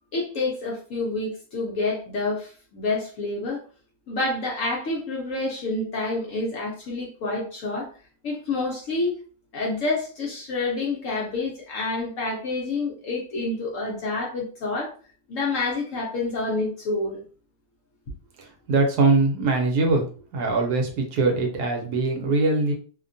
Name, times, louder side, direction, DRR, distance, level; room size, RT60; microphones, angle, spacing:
voice 1, 0.1-3.6 4.1-7.9 8.2-9.1 9.5-14.9 15.3-17.2, left 3 dB, 65° left, -3 dB, 0.8 m, -28 dB
voice 2, 18.7-20.1 20.3-22.7, right 3 dB, 70° right, 2 dB, 1.1 m, -22 dB
2.8 x 2.1 x 2.5 m, 0.40 s
omnidirectional pair, 1.8 m